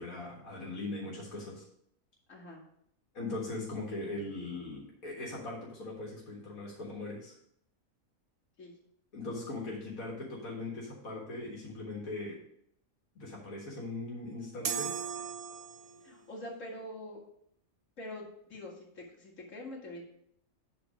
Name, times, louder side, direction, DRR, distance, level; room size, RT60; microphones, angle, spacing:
voice 1, 0.0-1.6 3.1-7.4 9.1-12.4 13.2-14.9, left 2 dB, 80° left, -3 dB, 2.0 m, -40 dB
voice 2, 2.3-2.6 8.6-8.7 16.0-17.2 18.0-20.0, left 1 dB, 65° left, -3 dB, 2.2 m, -44 dB
sound 1, 14.6-16.1, right 7 dB, 65° right, 0.3 m, -37 dB
7.8 x 4.1 x 6.0 m, 0.71 s
omnidirectional pair, 1.4 m